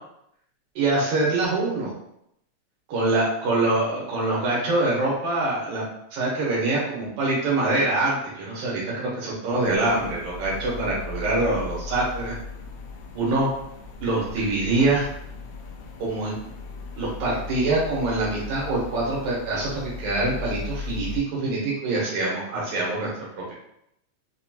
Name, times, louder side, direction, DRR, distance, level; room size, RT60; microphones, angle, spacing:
voice 1, 0.8-1.9 2.9-5.9 6.1-12.3 13.1-13.5 14.0-15.1 16.0-16.4 17.0-23.5, right 2 dB, 85° right, -6 dB, 2.4 m, -24 dB
sound 1, 9.6-21.2, left 4 dB, 85° left, 1.4 m, -37 dB
5.3 x 2.2 x 2.7 m, 0.76 s
omnidirectional pair, 3.3 m